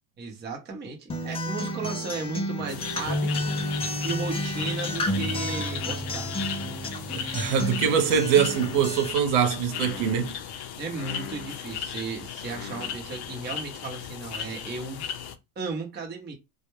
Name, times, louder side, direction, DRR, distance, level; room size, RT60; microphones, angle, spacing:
voice 1, 0.2-3.6 4.0-6.3 10.8-15.0 15.6-16.4, right 4 dB, 20° right, 0.8 m, -35 dB
Acoustic guitar, 1.1-9.1, equal, 15° left, 0.3 m, -31 dB
sound 1, 2.7-15.3, left 8 dB, 55° left, 0.6 m, -36 dB
voice 2, 7.1-10.3, right 7 dB, 80° right, 1.0 m, -23 dB
2.2 x 2.1 x 3.1 m
supercardioid pair, 110°, 49 cm